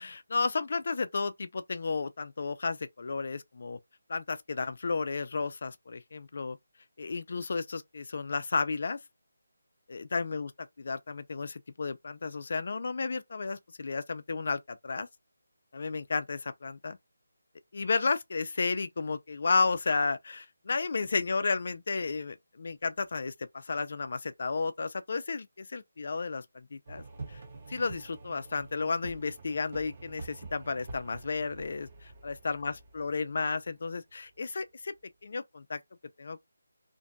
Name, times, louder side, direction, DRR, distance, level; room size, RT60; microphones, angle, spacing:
voice 1, 0.0-3.8 4.1-6.6 7.0-9.0 9.9-15.1 15.7-17.0 17.7-27.4 27.7-31.9 32.2-34.9 35.2-35.8 36.2-36.4, left 4 dB, 45° left, 0.3 m, -32 dB
sound 1, 26.9-34.4, right 3 dB, 40° right, 1.2 m, -47 dB
2.5 x 2.2 x 2.6 m
figure-of-eight pair, 175°, 0 cm